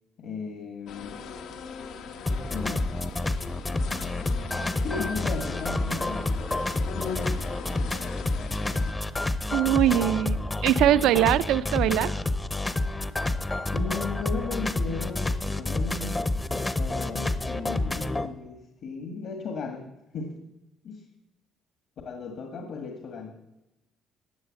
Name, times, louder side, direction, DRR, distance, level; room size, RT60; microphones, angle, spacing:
voice 1, 0.2-1.2 2.5-2.9 4.8-6.4 13.7-16.3 16.7-20.4 20.8-21.0 22.1-23.4, left 4 dB, 55° left, 5 dB, 1.7 m, -36 dB
sound 1, 0.9-8.9, left 6 dB, 80° left, 1.4 m, -39 dB
sound 2, 2.3-18.3, left 2 dB, 15° left, 0.7 m, -29 dB
voice 2, 9.5-12.1, right 12 dB, 80° right, 14 dB, 0.6 m, -22 dB
14.5 x 9.0 x 7.6 m, 0.95 s
cardioid pair, 150°, 0 cm